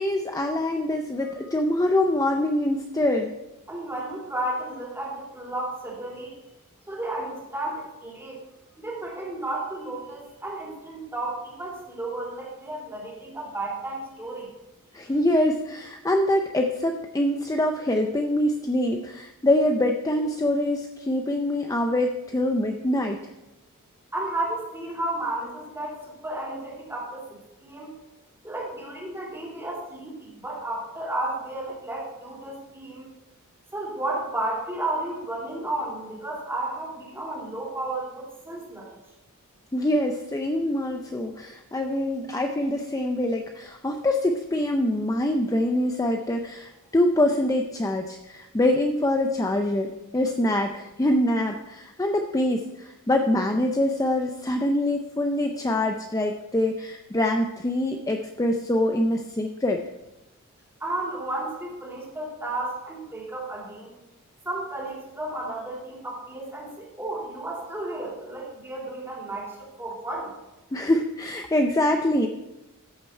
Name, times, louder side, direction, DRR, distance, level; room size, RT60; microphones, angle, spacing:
voice 1, 0.0-3.3 14.9-23.2 39.7-59.8 70.7-72.3, left 1 dB, 15° left, 4 dB, 0.5 m, -24 dB
voice 2, 3.7-6.4 6.9-8.4 8.8-14.5 24.1-27.2 27.6-27.9 28.4-33.1 33.7-38.9 60.8-63.9 64.4-70.3, right 2 dB, 10° right, -4 dB, 3.2 m, -33 dB
13.5 x 6.6 x 4.5 m, 0.99 s
head